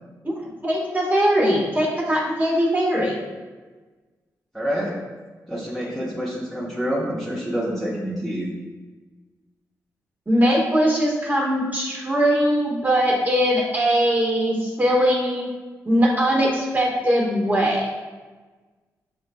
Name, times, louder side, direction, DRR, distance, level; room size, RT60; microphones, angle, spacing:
voice 1, 0.6-3.2 10.3-15.5 15.8-17.9, equal, 25° right, -3 dB, 1.4 m, -20 dB
voice 2, 4.5-4.9 5.5-8.5, equal, ahead, -7 dB, 1.0 m, -27 dB
6.4 x 2.4 x 2.3 m, 1.3 s
supercardioid pair, 50°, 7 cm